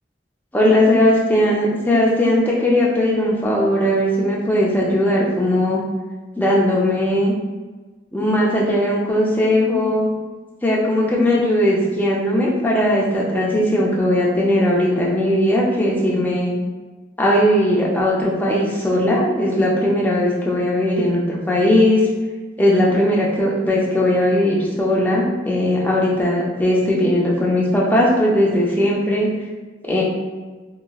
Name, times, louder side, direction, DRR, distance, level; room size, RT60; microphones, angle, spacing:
voice 1, 0.5-5.8 6.4-7.3 8.1-10.1 10.6-16.5 17.2-22.0 22.6-29.3 29.8-30.0, left 1 dB, 10° left, -4 dB, 0.5 m, -18 dB
3.8 x 2.1 x 2.3 m, 1.3 s
head